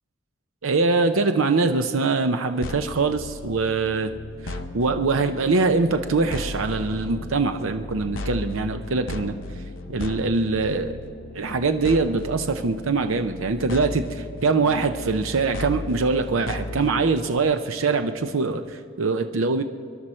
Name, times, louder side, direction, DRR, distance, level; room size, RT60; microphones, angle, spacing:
voice 1, 0.6-4.1 4.4-9.4 9.9-10.9 11.3-19.6, right 3 dB, 85° right, 7 dB, 0.7 m, -23 dB
sound 1, 2.6-17.4, left 2 dB, 75° left, 0.8 m, -36 dB
25.5 x 11.0 x 4.4 m, 2.3 s
head